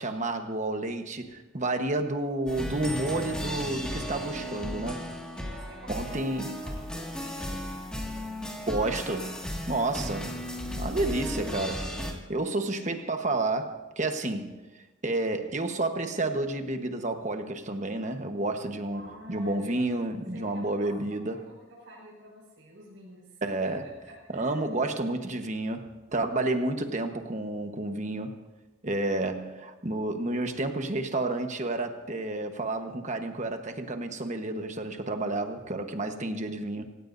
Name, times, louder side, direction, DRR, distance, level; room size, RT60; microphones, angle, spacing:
voice 1, 0.0-5.1 5.9-6.6 8.7-9.4 9.7-10.3 10.7-11.9 12.3-14.6 15.0-19.0 19.3-21.4 23.4-23.9 24.3-28.4 28.8-36.8, right 2 dB, 35° right, 6 dB, 1.2 m, -30 dB
sound 1, 2.5-12.1, equal, 5° left, 2.0 m, -35 dB
voice 2, 5.3-7.8 18.9-19.8 20.3-20.9 21.2-23.4 24.3-24.8 29.0-29.2, right 1 dB, 70° right, -7 dB, 5.4 m, -49 dB
27.5 x 16.5 x 2.7 m, 1.1 s
head